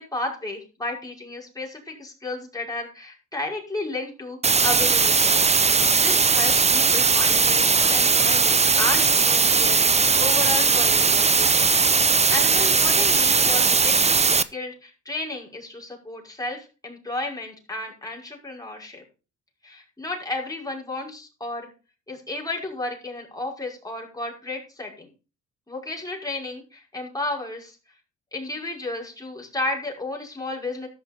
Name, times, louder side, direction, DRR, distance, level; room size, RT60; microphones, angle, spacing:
voice 1, 0.0-11.6 12.3-19.0 19.6-21.7 22.1-25.1 25.7-27.8 28.3-30.9, left 2 dB, 10° left, -1 dB, 5.7 m, -33 dB
sound 1, 4.4-14.4, right 5 dB, 20° right, 0.7 m, -19 dB
14.0 x 6.1 x 5.4 m, 0.33 s
cardioid pair, 90°, 30 cm